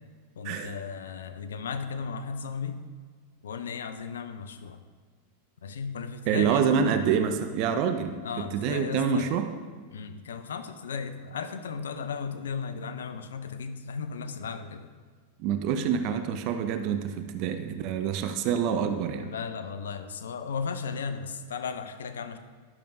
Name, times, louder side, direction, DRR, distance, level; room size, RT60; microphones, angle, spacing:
voice 1, 0.4-2.8 3.4-4.8 5.6-6.6 8.2-9.3 9.9-14.9 19.2-22.4, left 5 dB, 75° left, 9 dB, 0.5 m, -35 dB
voice 2, 6.3-8.2 8.5-9.5 15.4-19.3, right 7 dB, 50° right, 8 dB, 0.6 m, -26 dB
11.0 x 6.7 x 2.6 m, 1.5 s
hypercardioid pair, 95°, 0 cm